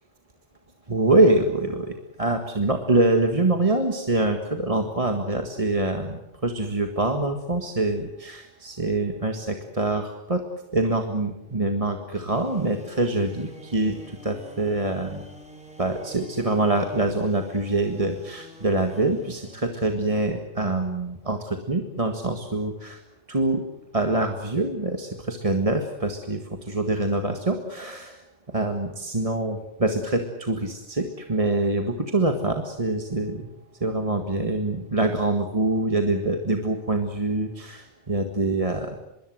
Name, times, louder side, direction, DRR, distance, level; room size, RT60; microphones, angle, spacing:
voice 1, 0.9-10.4 10.7-15.2 15.8-23.0 23.3-23.6 23.9-28.3 28.5-33.5 33.8-39.0, right 2 dB, 30° right, 5 dB, 1.8 m, -25 dB
sound 1, 12.3-19.6, right 1 dB, 5° right, 4.2 m, -47 dB
24.5 x 23.0 x 7.8 m, 0.88 s
omnidirectional pair, 1.2 m